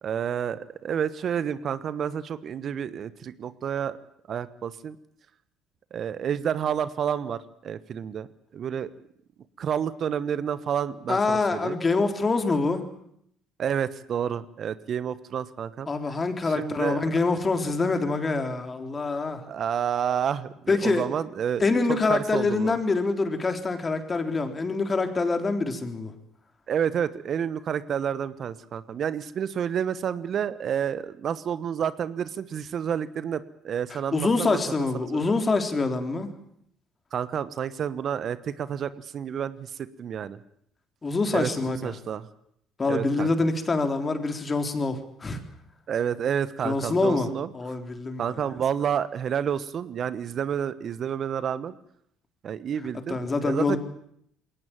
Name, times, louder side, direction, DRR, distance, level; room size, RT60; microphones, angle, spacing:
voice 1, 0.0-4.0 4.3-5.0 5.9-8.3 8.5-8.9 9.6-11.8 13.6-15.9 16.4-17.0 19.5-22.7 26.7-34.6 34.9-35.3 37.1-40.4 41.3-42.3 42.9-43.3 45.9-47.5 48.2-51.8 52.4-53.8, right 8 dB, 55° right, 15 dB, 1.2 m, -29 dB
voice 2, 11.1-12.8 15.9-19.5 20.7-21.1 21.6-26.1 33.9-36.3 41.0-41.9 42.8-45.4 46.6-47.3 47.5-48.4 53.1-53.8, left 3 dB, 30° left, 7 dB, 3.8 m, -25 dB
21.5 x 18.5 x 8.9 m, 0.70 s
hypercardioid pair, 60°, 0 cm